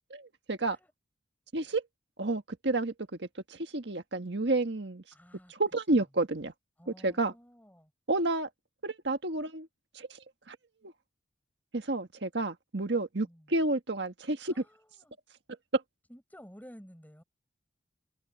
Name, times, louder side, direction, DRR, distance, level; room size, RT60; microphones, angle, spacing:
voice 1, 0.1-0.8 1.5-1.8 2.2-2.9 3.2-5.0 5.5-6.5 7.0-7.3 8.1-8.5 8.8-9.7 9.9-10.2 10.5-10.6 10.8-10.9 11.7-14.6 15.7-15.8, right 2 dB, 65° right, 1.6 m, -30 dB
voice 2, 5.1-5.5 6.8-7.9 13.2-13.5 14.4-15.2 16.1-17.2, equal, 10° left, 5.4 m, -53 dB
head